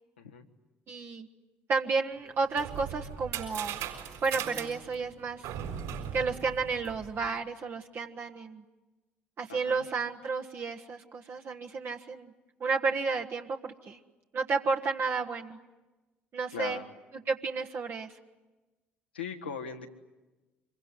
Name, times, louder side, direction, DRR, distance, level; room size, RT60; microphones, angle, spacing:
voice 1, 0.9-1.3 1.7-3.8 4.2-5.5 6.1-8.6 9.4-12.3 12.6-14.0 14.3-15.6 16.3-16.8 17.3-18.2, right 4 dB, 45° right, 3 dB, 1.3 m, -32 dB
sound 1, 2.2-7.3, right 8 dB, 70° right, 6.1 m, -39 dB
voice 2, 9.5-9.8 16.5-16.9 19.1-19.9, left 6 dB, 90° left, 2 dB, 1.6 m, -39 dB
26.0 x 23.0 x 9.7 m, 1.1 s
figure-of-eight pair, 50°, 5 cm